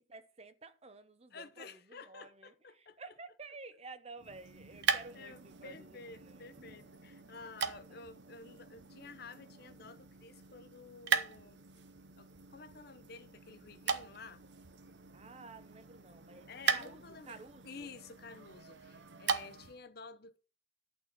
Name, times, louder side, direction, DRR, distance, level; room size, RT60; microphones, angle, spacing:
voice 1, 0.1-6.8 7.9-8.0 15.1-17.9, right 3 dB, 30° right, 0.8 m, -52 dB
voice 2, 1.3-3.1 5.1-11.6 12.2-14.4 16.5-20.4, left 4 dB, 50° left, 0.8 m, -52 dB
sound 1, 4.2-19.8, right 6 dB, 60° right, 0.8 m, -40 dB
11.5 x 4.2 x 7.5 m
head